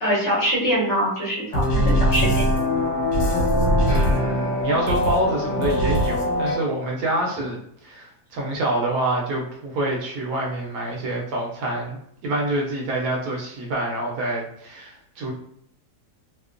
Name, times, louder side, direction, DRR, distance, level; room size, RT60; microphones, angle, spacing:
voice 1, 0.0-2.5, equal, 50° left, -6 dB, 1.0 m, -23 dB
sound 1, 1.5-6.5, equal, 85° left, 1.2 m, -21 dB
voice 2, 3.9-15.3, right 1 dB, 70° right, -1 dB, 1.0 m, -26 dB
2.8 x 2.1 x 2.4 m, 0.68 s
omnidirectional pair, 1.8 m